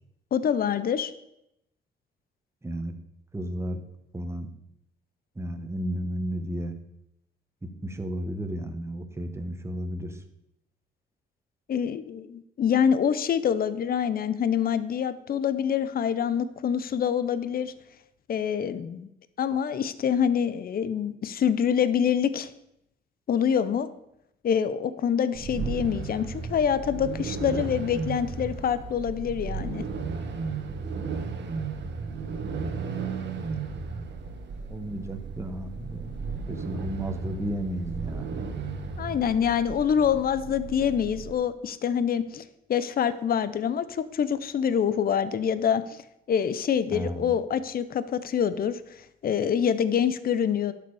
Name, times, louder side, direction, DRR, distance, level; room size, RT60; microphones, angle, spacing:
voice 1, 0.3-1.1 11.7-17.7 18.3-19.1 19.4-22.5 23.3-23.9 24.4-29.8 39.0-42.4 42.7-46.0 46.3-48.8 49.2-50.7, left 8 dB, 50° left, 14 dB, 0.7 m, -26 dB
voice 2, 2.6-2.9 3.3-3.8 4.1-4.5 5.4-6.7 7.6-10.2 34.7-38.4 46.9-47.3, right 1 dB, 15° right, 7 dB, 1.4 m, -33 dB
sound 1, 25.3-41.3, right 5 dB, 65° right, 1.4 m, -34 dB
11.5 x 6.9 x 4.9 m, 0.81 s
cardioid pair, 90°, 20 cm